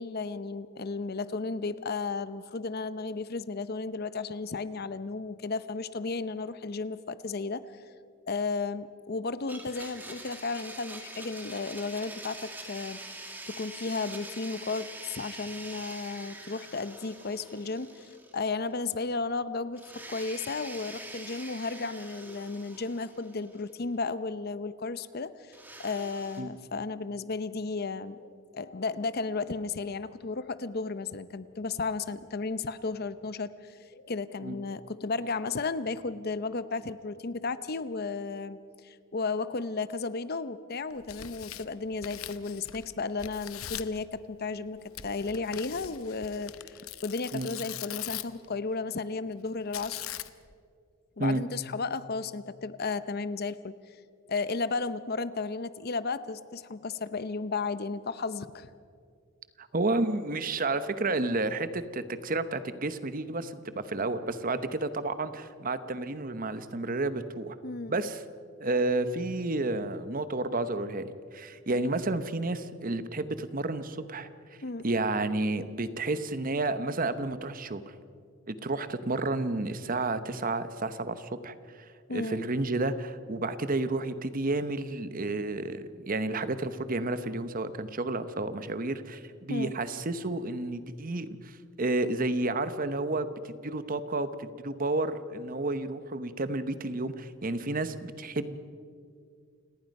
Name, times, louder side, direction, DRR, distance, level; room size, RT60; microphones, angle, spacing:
voice 1, 0.0-7.6 8.3-13.0 13.5-50.0 51.2-54.0 54.3-58.7 67.6-68.0 74.6-74.8 82.1-82.5 89.5-89.7, left 4 dB, 50° left, 14 dB, 0.7 m, -34 dB
Domestic sounds home sounds, 9.5-18.6 18.9-19.0 19.8-23.7 25.5-26.4, right 2 dB, 10° right, 1.9 m, -45 dB
Tearing, 40.9-42.9 43.2-44.0 45.0-48.5 49.7-50.5, left 12 dB, 90° left, 0.8 m, -41 dB
voice 2, 59.6-67.6 67.9-68.2 68.6-71.0 71.3-74.3 74.8-77.8 78.5-98.6, right 2 dB, 40° right, 12 dB, 0.9 m, -31 dB
29.0 x 18.5 x 5.4 m, 2.2 s
head